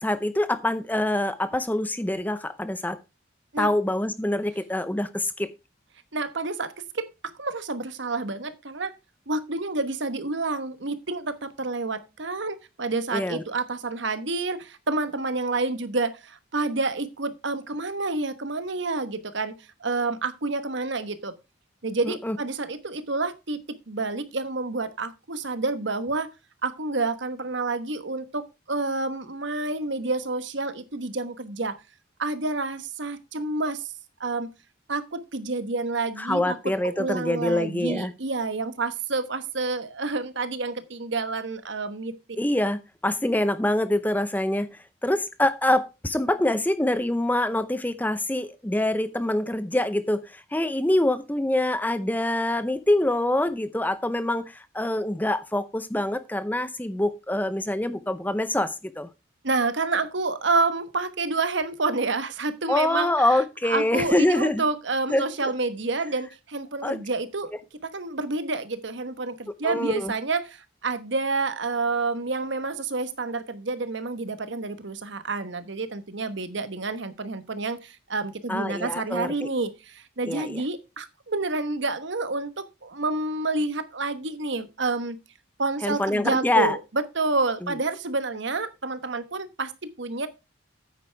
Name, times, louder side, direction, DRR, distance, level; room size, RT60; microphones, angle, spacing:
voice 1, 0.0-3.0 3.6-5.5 13.1-13.4 22.0-22.4 36.2-38.1 42.4-44.7 45.0-59.1 62.7-64.6 65.1-65.5 66.8-67.0 69.6-70.1 78.5-79.5 80.3-80.6 85.8-86.8, left 1 dB, 10° left, 13 dB, 0.5 m, -25 dB
voice 2, 6.1-8.9 9.3-21.3 21.8-26.3 26.6-31.8 32.2-33.9 34.2-34.5 34.9-42.2 59.4-67.5 67.8-85.2 85.6-90.3, right 3 dB, 65° right, 12 dB, 1.1 m, -29 dB
9.1 x 9.1 x 3.4 m, 0.26 s
head